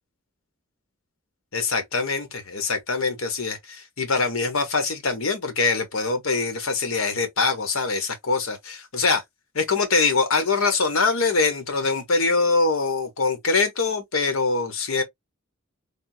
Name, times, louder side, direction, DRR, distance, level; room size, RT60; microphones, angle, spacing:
voice 1, 1.5-9.2 9.5-15.0, left 4 dB, 80° left, 1.0 m, -23 dB
3.4 x 2.2 x 2.7 m
head